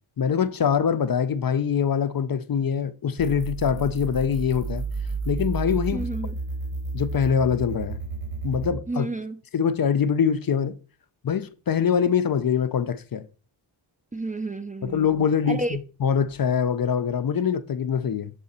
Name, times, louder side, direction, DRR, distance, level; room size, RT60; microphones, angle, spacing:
voice 1, 0.2-4.8 5.3-6.1 6.9-8.0 8.4-9.1 9.5-10.7 11.2-13.2 14.8-18.3, left 7 dB, 50° left, 0.5 m, -24 dB
sound 1, 3.2-8.7, right 3 dB, 75° right, 2.2 m, -31 dB
voice 2, 5.9-6.4 8.9-9.4 14.1-15.1 15.5-15.8, right 2 dB, 20° right, 0.4 m, -31 dB
6.8 x 3.7 x 4.2 m
wide cardioid pair, 70°, 48 cm